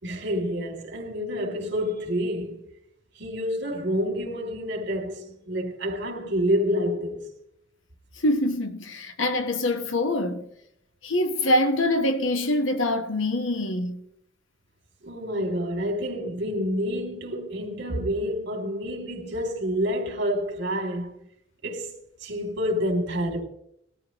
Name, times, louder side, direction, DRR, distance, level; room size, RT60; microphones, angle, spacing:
voice 1, 0.0-2.6 3.2-7.3 15.0-21.2 21.6-21.9 22.2-23.4, equal, 65° right, 3.1 m, -28 dB
voice 2, 8.2-10.4 11.0-14.0, left 1 dB, 85° left, 1.3 m, -24 dB
20.0 x 13.0 x 3.1 m
head